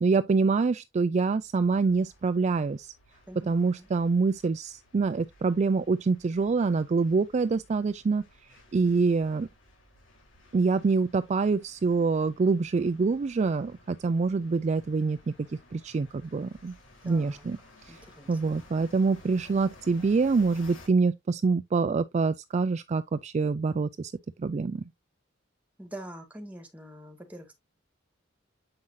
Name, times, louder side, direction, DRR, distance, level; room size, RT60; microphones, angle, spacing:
voice 1, 0.0-2.9 3.4-8.2 8.7-9.5 10.5-16.7 17.0-17.6 17.9-18.0 18.3-24.1 24.4-24.8, right 4 dB, 35° right, 0.3 m, -26 dB
sound 1, 1.4-20.9, left 2 dB, 90° left, 3.7 m, -56 dB
voice 2, 3.3-3.9 17.0-17.5 17.9-18.6 25.8-27.5, right 1 dB, 10° right, 2.0 m, -45 dB
7.6 x 5.7 x 2.6 m
head